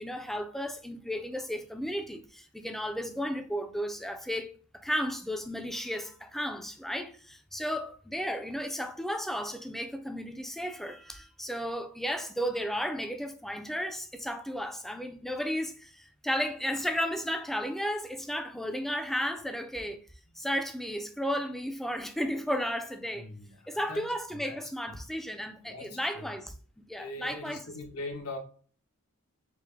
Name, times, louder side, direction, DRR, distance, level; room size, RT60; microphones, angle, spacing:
voice 1, 0.0-20.0 20.4-23.3 23.7-27.7, equal, ahead, 0.3 m, -34 dB
voice 2, 23.1-24.0 24.3-24.6 25.6-26.3 27.0-28.4, left 2 dB, 75° left, 0.8 m, -41 dB
4.6 x 2.1 x 3.4 m
head